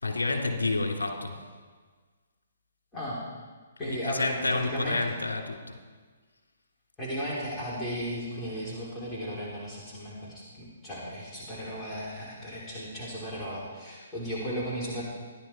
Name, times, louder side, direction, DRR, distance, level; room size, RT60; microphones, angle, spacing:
voice 1, 0.0-1.4 3.8-5.8, left 3 dB, 75° left, 1 dB, 3.0 m, -29 dB
voice 2, 3.8-5.0 7.0-15.0, equal, 10° left, -8 dB, 3.5 m, -35 dB
13.5 x 11.0 x 4.5 m, 1.4 s
figure-of-eight pair, 130°, 0 cm